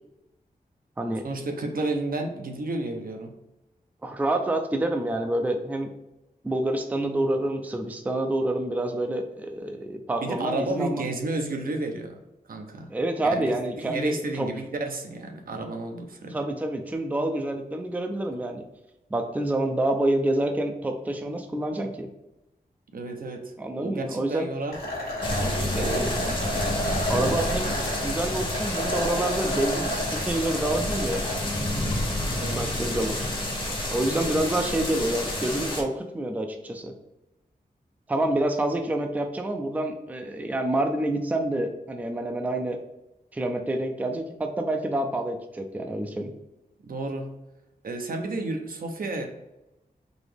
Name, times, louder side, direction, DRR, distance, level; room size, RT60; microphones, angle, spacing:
voice 1, 1.2-3.3 10.2-12.2 12.5-12.9 13.5-16.4 22.9-24.8 25.4-26.4 32.3-32.6 34.1-34.5 46.9-47.3 47.8-49.3, right 2 dB, 65° right, 4 dB, 0.7 m, -32 dB
voice 2, 4.0-5.9 6.4-11.1 12.9-14.5 16.3-18.7 19.1-22.1 23.6-24.5 25.7-26.1 27.1-27.8 28.0-31.2 32.6-33.2 33.9-36.9 38.1-42.8 43.3-46.3, right 1 dB, 10° right, 5 dB, 0.4 m, -27 dB
sound 1, 24.7-31.4, equal, 75° left, 1.3 m, -31 dB
sound 2, 25.2-35.8, left 1 dB, 30° left, 0.9 m, -29 dB
4.0 x 2.9 x 3.3 m, 0.95 s
wide cardioid pair, 120°, 16 cm